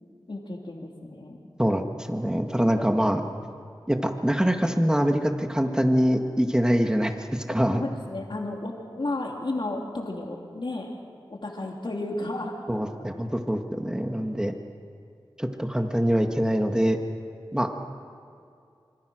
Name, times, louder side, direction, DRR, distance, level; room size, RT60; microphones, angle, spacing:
voice 1, 0.3-1.5 7.4-10.9 11.3-13.2, left 2 dB, 60° left, 0 dB, 3.1 m, -33 dB
voice 2, 1.6-3.2 3.9-7.8 12.7-14.6 15.4-17.0 17.5-17.7, equal, 10° right, 4 dB, 1.8 m, -24 dB
27.0 x 26.0 x 6.4 m, 2.4 s
wide cardioid pair, 55°, 9 cm